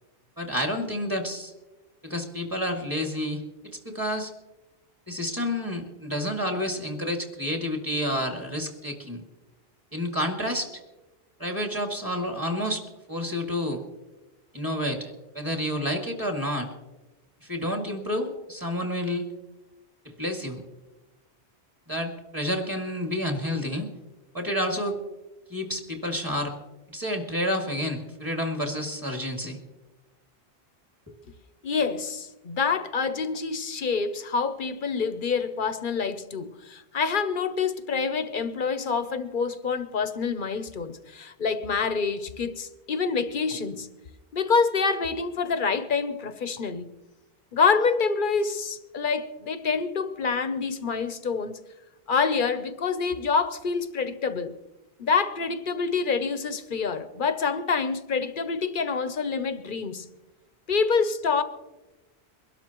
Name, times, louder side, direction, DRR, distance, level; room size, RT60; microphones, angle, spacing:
voice 1, 0.4-1.5 2.0-4.3 5.1-9.2 9.9-10.7 11.4-12.8 13.1-13.8 14.5-16.7 17.4-19.3 20.1-20.6 21.9-23.9 24.3-25.0 25.5-26.5 26.9-29.6 31.1-31.2, left 1 dB, 20° right, 2.1 m, -29 dB
voice 2, 31.6-43.9 44.3-46.9 47.5-51.6 52.1-54.5 55.0-60.1 60.7-61.4, left 5 dB, 50° left, 0.9 m, -27 dB
23.5 x 12.5 x 3.0 m
omnidirectional pair, 1.1 m